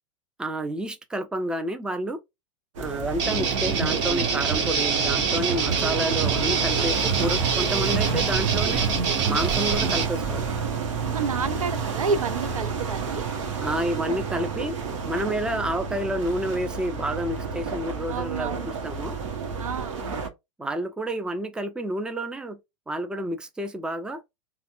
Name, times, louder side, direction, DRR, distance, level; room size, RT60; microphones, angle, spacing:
voice 1, 0.4-2.2 2.8-8.9 9.2-10.5 13.6-14.8 15.0-19.2 20.6-22.6 22.9-24.2, right 1 dB, 5° right, 0.4 m, -29 dB
sound 1, 2.7-20.3, right 5 dB, 65° right, 0.9 m, -30 dB
sound 2, 3.2-10.0, right 6 dB, 45° right, 1.5 m, -25 dB
voice 2, 11.0-13.3 18.1-18.7 19.6-20.0, right 5 dB, 85° right, 0.5 m, -29 dB
4.0 x 2.1 x 2.4 m
hypercardioid pair, 95°, 17 cm